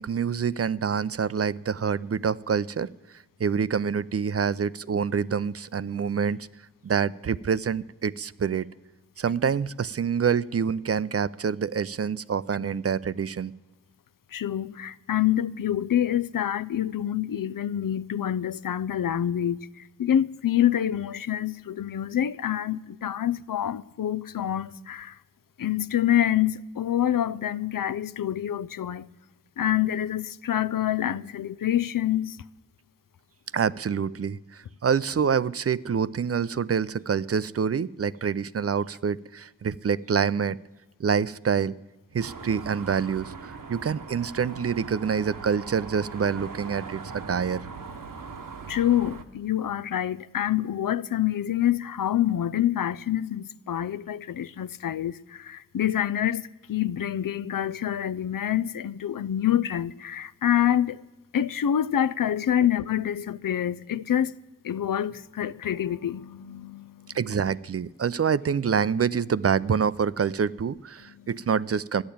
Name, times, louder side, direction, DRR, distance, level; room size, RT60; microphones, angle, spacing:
voice 1, 0.0-2.9 3.4-6.5 6.8-8.7 9.2-13.5 33.5-40.6 41.0-41.7 42.1-47.6 67.1-72.0, right 6 dB, 45° right, 0.4 m, -26 dB
voice 2, 14.3-19.6 20.0-25.1 25.6-29.0 29.6-32.3 48.7-55.1 55.5-56.4 56.7-61.0 61.3-64.3 64.6-66.8, left 11 dB, 80° left, 0.5 m, -26 dB
sound 1, 42.2-49.2, right 5 dB, 75° right, 1.1 m, -40 dB
13.5 x 10.5 x 8.5 m
wide cardioid pair, 65°, 33 cm